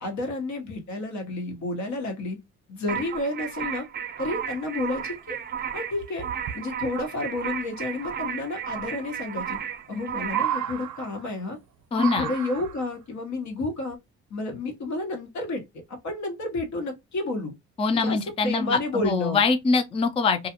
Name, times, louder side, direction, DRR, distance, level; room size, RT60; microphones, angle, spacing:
voice 1, 0.0-2.4 2.7-3.9 4.2-5.4 5.7-6.3 6.5-9.6 9.9-11.6 12.0-14.0 14.3-17.5 17.9-18.2 18.4-19.4, left 2 dB, 70° left, 1.1 m, -31 dB
sound 1, 2.9-10.5, right 8 dB, 35° right, 0.5 m, -34 dB
sound 2, 4.9-5.0 5.3-5.4 6.0-6.6 8.1-8.2 9.4-9.9 10.2-11.5 11.9-12.9 13.9-14.0, right 10 dB, 75° right, 0.7 m, -32 dB
voice 2, 11.9-12.3 17.8-20.5, left 4 dB, 20° left, 0.4 m, -23 dB
2.4 x 2.3 x 2.8 m
cardioid pair, 90°, 30 cm